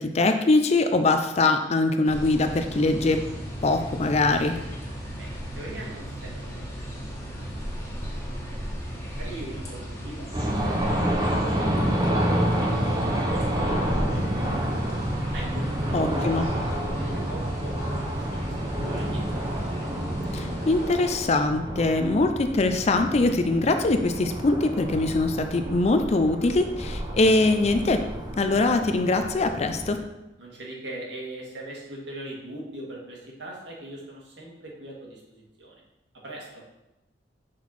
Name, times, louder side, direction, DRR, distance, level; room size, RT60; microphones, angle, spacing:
voice 1, 0.0-3.2 3.6-4.6 15.9-16.5 20.3-28.0 28.4-30.0, left 2 dB, 35° left, 7 dB, 0.4 m, -22 dB
sound 1, 2.0-20.9, equal, 15° left, 1.5 m, -36 dB
voice 2, 5.2-7.5 7.7-8.0 8.3-15.0 15.3-18.5 18.9-19.2 30.4-35.8 36.2-36.6, right 1 dB, 65° right, -3 dB, 1.8 m, -41 dB
sound 2, 10.3-30.0, equal, 20° right, 0.7 m, -29 dB
6.1 x 4.4 x 4.2 m, 0.93 s
head